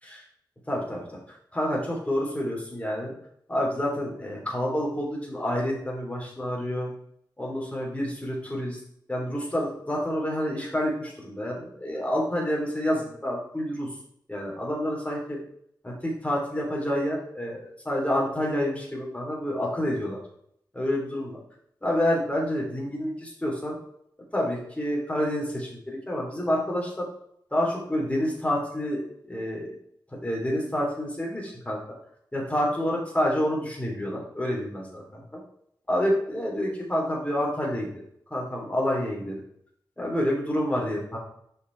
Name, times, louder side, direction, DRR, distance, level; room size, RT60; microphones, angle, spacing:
voice 1, 0.7-1.2 1.5-3.1 3.5-6.9 7.4-8.8 9.1-13.9 14.3-15.4 15.8-20.2 20.7-21.4 21.8-23.8 24.3-27.0 27.5-29.0 29.3-29.7 30.1-31.8 32.3-35.4 35.9-37.9 38.3-39.4 40.0-41.2, equal, 15° left, -3 dB, 3.2 m, -28 dB
6.3 x 5.4 x 4.6 m, 0.70 s
wide cardioid pair, 65°, 8 cm